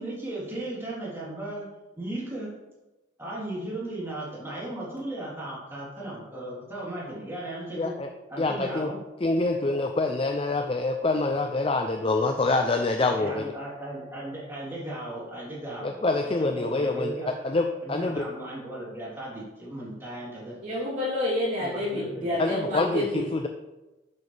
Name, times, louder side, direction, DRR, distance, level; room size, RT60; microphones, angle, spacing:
voice 1, 0.0-1.7 2.0-2.5 3.2-8.0 8.3-9.0 12.8-20.6 21.6-22.3, right 1 dB, 10° right, -7 dB, 3.4 m, -36 dB
voice 2, 7.8-8.1 8.4-8.9 9.2-13.4 15.8-17.1 17.4-18.2 22.4-23.5, left 2 dB, 25° left, 5 dB, 0.4 m, -26 dB
voice 3, 20.6-23.2, left 1 dB, 35° right, -11 dB, 3.2 m, -28 dB
11.0 x 8.0 x 3.4 m, 1.1 s
head